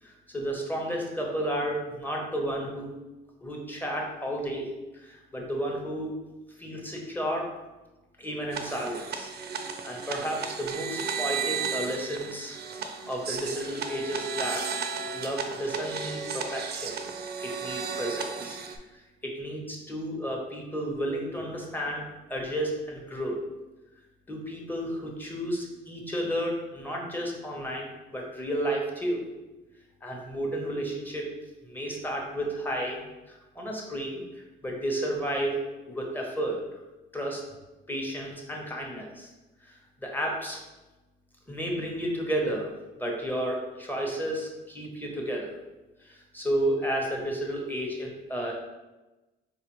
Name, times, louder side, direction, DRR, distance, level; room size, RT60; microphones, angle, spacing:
voice 1, 0.0-2.9 3.4-4.7 4.9-6.2 6.6-7.5 8.2-9.3 9.6-14.7 15.1-16.9 17.4-18.6 19.2-22.0 22.3-23.4 24.3-29.3 30.0-31.3 31.6-33.0 33.3-35.6 35.9-36.6 37.1-37.4 37.9-39.3 39.6-40.6 41.5-42.7 43.0-45.6 46.0-48.6, right 1 dB, 10° left, -1 dB, 0.8 m, -32 dB
sound 1, 8.5-18.8, right 5 dB, 55° right, 0.4 m, -34 dB
4.0 x 2.4 x 3.0 m, 1.1 s
cardioid pair, 90°, 20 cm